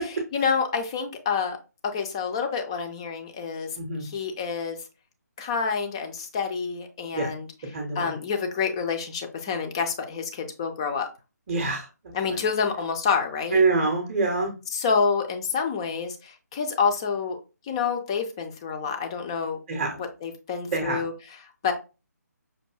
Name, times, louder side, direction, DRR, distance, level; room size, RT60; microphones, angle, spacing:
voice 1, 0.0-1.6 1.8-4.8 5.4-11.1 12.1-13.6 14.7-17.4 17.6-19.6 20.0-21.7, left 5 dB, 15° left, 6 dB, 0.4 m, -28 dB
voice 2, 7.7-8.1 11.5-11.9 13.5-14.5 19.7-20.0 20.7-21.1, right 3 dB, 25° right, 1 dB, 0.6 m, -25 dB
5.2 x 2.6 x 2.2 m, 0.30 s
figure-of-eight pair, 145°, 9 cm